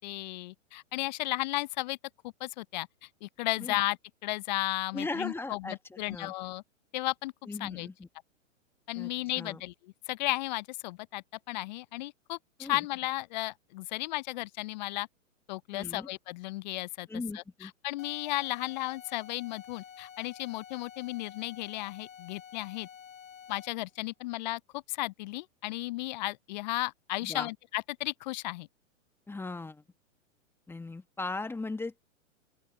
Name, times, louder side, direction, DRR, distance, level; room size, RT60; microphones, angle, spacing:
voice 1, 0.0-2.0 2.2-6.6 6.9-7.3 7.6-7.9 8.9-9.7 10.1-15.1 15.5-17.1 17.3-22.9 23.5-28.7, left 19 dB, 35° left, 0.5 m, -34 dB
voice 2, 4.9-6.3 7.5-8.1 8.9-9.1 9.4-9.6 12.6-12.8 15.7-16.1 17.1-17.7 27.2-27.5 29.3-29.8 30.7-32.0, left 3 dB, 5° left, 1.3 m, -38 dB
sound 1, 18.0-23.9, left 8 dB, 75° left, 1.0 m, -50 dB
open air
hypercardioid pair, 115°, 40 cm